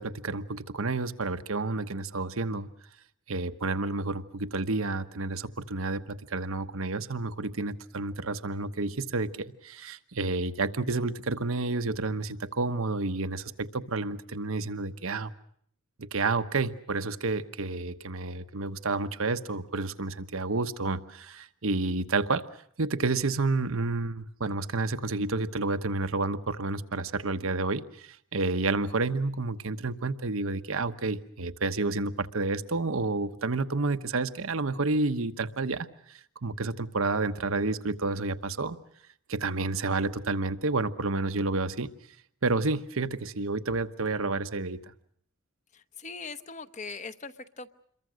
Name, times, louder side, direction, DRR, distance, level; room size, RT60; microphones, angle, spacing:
voice 1, 0.0-2.7 3.3-15.3 16.0-22.5 22.8-38.8 39.3-41.9 42.4-44.8, right 3 dB, 75° right, 10 dB, 1.1 m, -30 dB
voice 2, 45.7-47.7, left 4 dB, 35° left, 12 dB, 0.9 m, -41 dB
27.5 x 22.5 x 6.3 m, 0.65 s
head